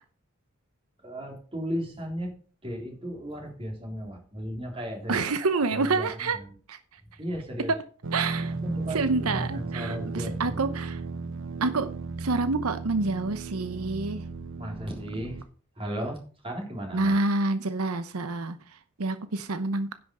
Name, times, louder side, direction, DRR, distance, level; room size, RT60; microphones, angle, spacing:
voice 1, 1.0-2.3 2.6-5.2 5.7-6.5 7.2-7.7 8.6-10.6 14.6-15.4 15.8-17.2, equal, 25° right, 0 dB, 3.6 m, -35 dB
voice 2, 5.1-6.4 6.7-6.8 7.7-7.8 8.1-8.5 8.9-11.0 11.6-11.9 12.2-14.2 16.9-19.9, right 3 dB, 90° right, 11 dB, 0.8 m, -27 dB
sound 1, 8.0-15.4, right 3 dB, 60° right, 0.8 m, -35 dB
10.5 x 6.0 x 6.4 m, 0.40 s
head